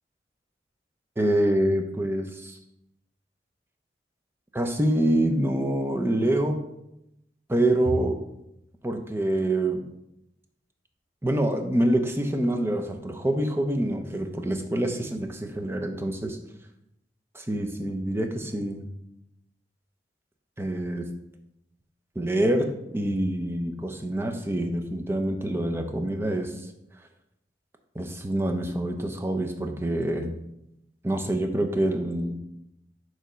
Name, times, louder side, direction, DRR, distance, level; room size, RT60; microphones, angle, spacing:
voice 1, 1.2-2.6 4.5-6.6 7.5-8.2 8.8-9.8 11.2-16.4 17.3-18.8 20.6-21.1 22.2-26.5 27.9-30.3 31.0-32.4, right 1 dB, 15° right, 4 dB, 0.5 m, -26 dB
6.8 x 3.1 x 5.0 m, 0.83 s
head